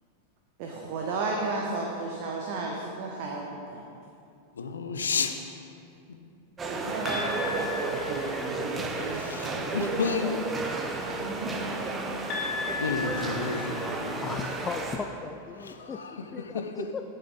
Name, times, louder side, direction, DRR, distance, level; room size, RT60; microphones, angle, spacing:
voice 1, 0.6-3.4 3.7-3.8 6.6-9.9 11.0-12.2 12.7-12.9, right 3 dB, 45° right, -1 dB, 0.9 m, -34 dB
voice 2, 4.6-5.4 9.1-10.5 12.8-14.5 15.6-16.1, left 5 dB, 70° left, 6 dB, 0.7 m, -31 dB
sound 1, 6.6-15.0, right 3 dB, 20° right, 0.9 m, -32 dB
sound 2, 7.1-8.7 12.3-14.3, left 5 dB, 40° left, 2.0 m, -35 dB
voice 3, 14.2-17.0, left 5 dB, 20° left, 5 dB, 0.4 m, -37 dB
11.5 x 6.6 x 3.9 m, 2.5 s
figure-of-eight pair, 90°, 0 cm